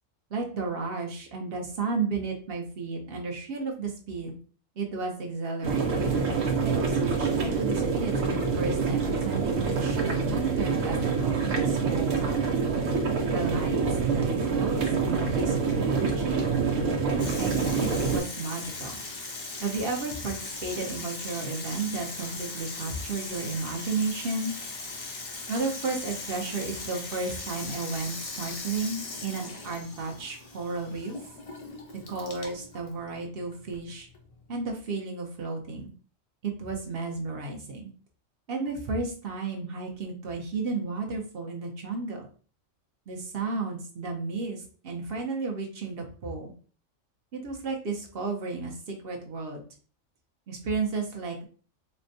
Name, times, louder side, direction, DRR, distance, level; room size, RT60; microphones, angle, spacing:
voice 1, 0.3-4.4 4.8-6.1 6.6-12.6 13.3-13.8 14.1-16.5 17.4-18.9 19.6-24.5 25.5-31.2 32.1-34.1 34.5-35.9 36.4-37.9 38.5-42.3 43.1-46.5 47.3-49.6 50.5-51.5, right 4 dB, 55° right, 1 dB, 0.8 m, -33 dB
sound 1, 5.6-18.2, right 5 dB, 75° right, 1.1 m, -26 dB
Water tap faucet / Sink (filling or washing), 17.2-34.7, left 3 dB, 50° left, 0.4 m, -39 dB
4.3 x 2.2 x 2.6 m, 0.41 s
omnidirectional pair, 1.4 m